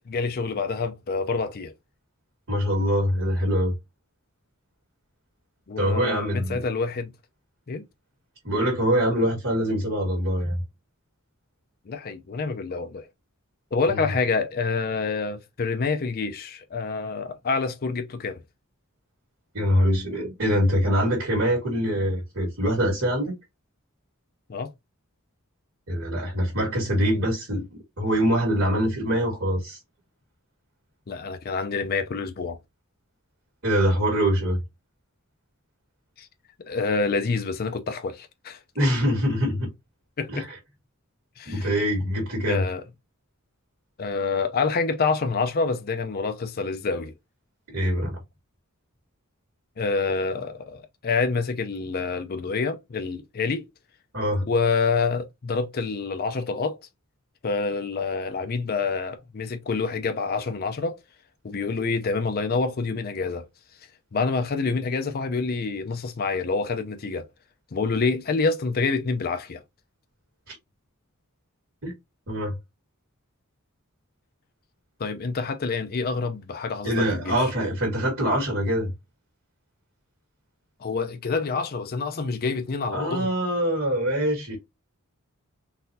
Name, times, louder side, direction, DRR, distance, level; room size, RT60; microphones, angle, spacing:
voice 1, 0.1-1.7 5.7-7.1 7.7-7.8 11.9-13.1 13.7-18.4 24.5-24.7 31.1-32.6 36.2-36.3 36.7-38.6 40.2-40.4 41.4-41.7 42.4-42.8 44.0-47.1 49.8-53.6 54.5-56.8 57.4-61.0 61.4-63.5 64.1-67.3 67.7-69.6 75.0-77.5 80.8-83.3, left 4 dB, 45° left, 0.5 m, -27 dB
voice 2, 2.5-3.7 5.8-6.6 8.4-10.6 13.9-14.1 19.5-23.3 25.9-29.8 33.6-34.6 38.8-39.7 40.3-40.6 41.5-42.6 47.7-48.2 54.1-54.4 70.5-70.6 71.8-71.9 72.3-72.5 76.8-78.9 82.9-84.6, equal, 60° right, 1.7 m, -24 dB
3.9 x 2.6 x 2.6 m
head